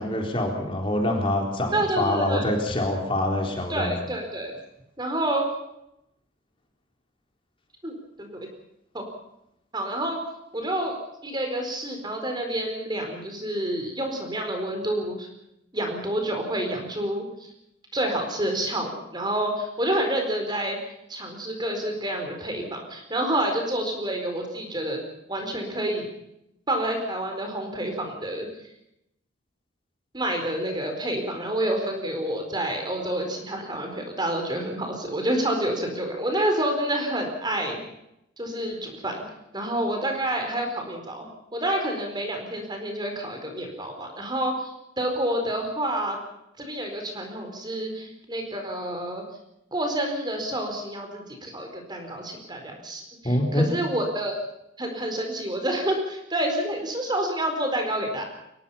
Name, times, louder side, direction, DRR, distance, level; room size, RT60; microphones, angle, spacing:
voice 1, 0.0-3.9 53.2-53.7, left 1 dB, 25° left, 1 dB, 4.0 m, -25 dB
voice 2, 1.7-2.5 3.7-4.5 5.0-5.5 7.8-8.3 8.9-9.0 9.7-10.2 10.5-11.0 11.2-15.3 15.7-17.5 17.9-20.8 21.1-25.0 25.3-26.1 26.7-28.5 30.1-37.8 38.4-39.2 39.5-41.2 41.5-46.2 46.6-49.2 49.7-54.4 54.8-58.2, right 1 dB, 20° right, 3 dB, 4.5 m, -28 dB
23.0 x 21.0 x 5.7 m, 0.81 s
head